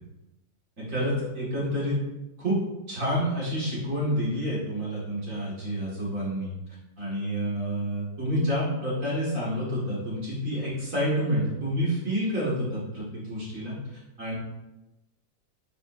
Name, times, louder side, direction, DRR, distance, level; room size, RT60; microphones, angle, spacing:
voice 1, 0.8-2.0 2.4-2.6 2.9-6.5 7.0-14.3, equal, 45° right, -7 dB, 2.3 m, -28 dB
9.0 x 4.2 x 2.7 m, 0.98 s
omnidirectional pair, 2.0 m